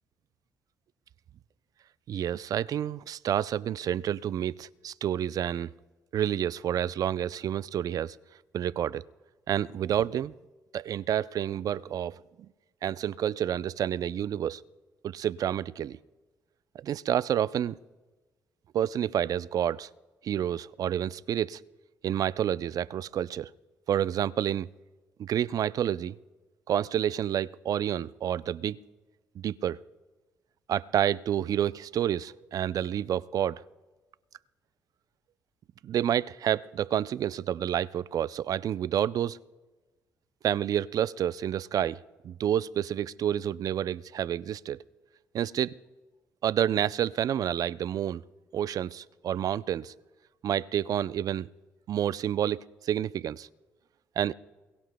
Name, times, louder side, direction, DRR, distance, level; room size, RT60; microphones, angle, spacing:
voice 1, 2.1-5.7 6.1-8.2 8.5-9.0 9.5-10.3 10.7-12.2 12.8-14.6 15.0-16.0 16.7-17.8 18.7-19.9 20.2-21.6 22.0-23.5 23.9-24.7 25.2-26.2 26.7-28.8 29.4-29.8 30.7-33.6 35.8-39.4 40.4-42.0 42.2-44.8 45.3-45.7 46.4-48.2 48.5-49.9 50.4-51.5 51.9-53.5 54.2-54.3, right 10 dB, 60° right, 0.4 m, -29 dB
29.0 x 21.5 x 2.2 m
hypercardioid pair, 55°, 7 cm